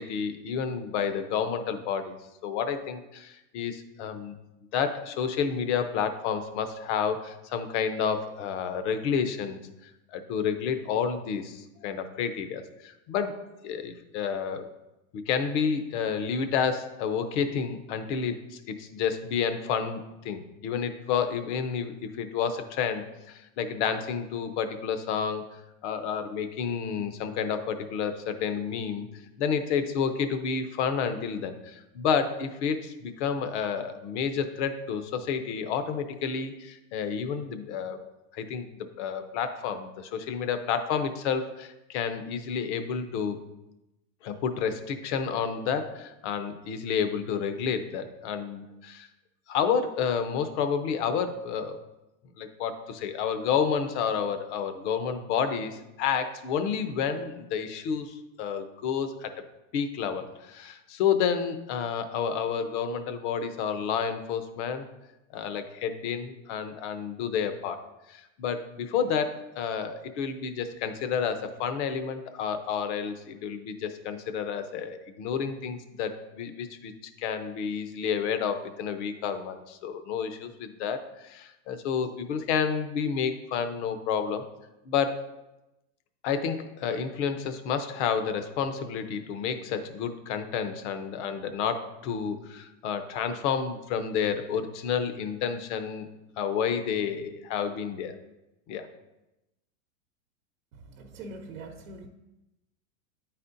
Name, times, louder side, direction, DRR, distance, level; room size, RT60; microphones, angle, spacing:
voice 1, 0.0-2.2 2.4-4.4 4.7-14.7 15.1-25.4 25.8-29.1 29.4-38.0 38.3-38.7 39.0-43.4 44.2-49.1 49.5-51.8 52.4-59.4 59.7-64.8 65.3-67.8 68.1-76.9 77.2-84.5 84.8-85.2 86.2-96.1 96.4-98.1 98.7-98.9, left 7 dB, 55° left, 9 dB, 0.7 m, -30 dB
voice 2, 100.7-102.1, right 2 dB, 75° right, 1 dB, 0.8 m, -43 dB
9.1 x 4.2 x 2.6 m, 0.95 s
supercardioid pair, 130°, 41 cm